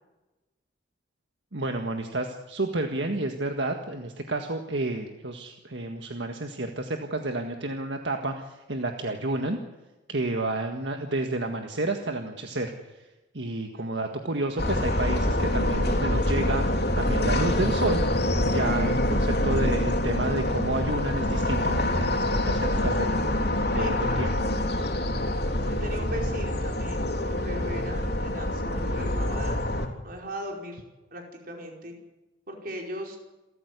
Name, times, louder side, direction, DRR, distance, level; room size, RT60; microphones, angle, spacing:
voice 1, 1.5-9.6 10.1-13.0 13.3-18.0 18.5-23.2 23.7-24.3, right 2 dB, 75° right, 4 dB, 1.8 m, -30 dB
sound 1, 14.6-29.9, left 1 dB, 60° left, 3.6 m, -26 dB
voice 2, 23.7-24.3 25.6-29.6 30.0-30.8 31.1-31.9 32.5-33.2, equal, 55° right, 1 dB, 5.1 m, -38 dB
28.0 x 14.0 x 8.2 m, 1.1 s
head